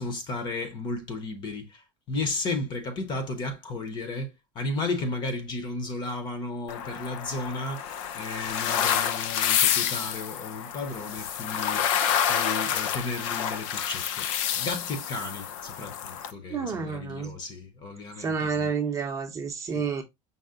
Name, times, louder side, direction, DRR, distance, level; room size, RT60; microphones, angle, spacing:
voice 1, 0.0-7.9 8.1-11.8 12.3-14.3 14.5-18.7 19.7-19.9, left 2 dB, 25° left, 0.7 m, -34 dB
sound 1, 6.7-16.3, left 9 dB, 70° left, 0.6 m, -28 dB
voice 2, 16.5-17.3 18.2-20.0, right 5 dB, 20° right, 0.6 m, -29 dB
5.4 x 2.1 x 3.6 m
cardioid pair, 165°, 17 cm